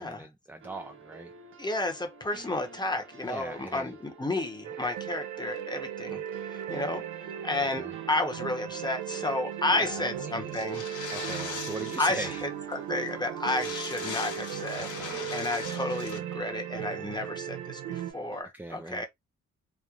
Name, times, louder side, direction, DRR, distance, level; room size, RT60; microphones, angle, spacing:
voice 1, 0.0-1.3 3.2-3.9 7.8-8.0 9.7-10.6 11.1-12.4 14.8-15.3 18.5-19.0, right 1 dB, 5° right, 0.3 m, -41 dB
sound 1, 0.6-18.4, right 4 dB, 40° right, 0.7 m, -50 dB
voice 2, 1.6-10.8 12.0-12.3 12.7-14.9 15.3-19.1, left 2 dB, 15° left, 0.9 m, -32 dB
sound 2, 4.6-18.1, right 10 dB, 85° right, 0.5 m, -37 dB
sound 3, 10.5-12.5 12.7-12.8 13.1-13.2 13.4-16.2, left 6 dB, 70° left, 1.1 m, -40 dB
3.1 x 2.1 x 2.4 m
supercardioid pair, 60°, 31 cm